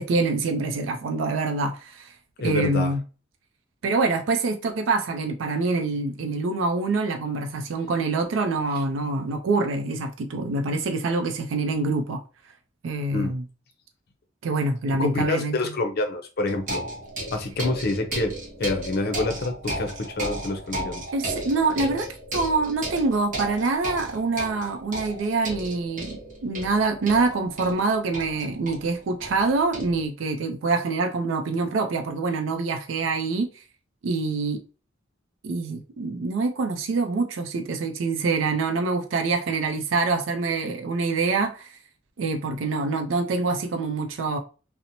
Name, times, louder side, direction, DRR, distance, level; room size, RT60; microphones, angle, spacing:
voice 1, 0.0-2.1 2.4-3.0 3.8-12.2 12.8-13.4 14.4-15.7 21.1-33.5 34.0-34.6 35.4-41.8 42.2-44.4, right 3 dB, 80° right, 0.4 m, -25 dB
voice 2, 2.4-2.9 13.1-13.4 14.9-16.8 17.3-21.0, left 2 dB, 55° left, 0.5 m, -27 dB
sound 1, 16.5-30.1, right 1 dB, 45° right, 0.8 m, -34 dB
2.8 x 2.0 x 2.6 m
head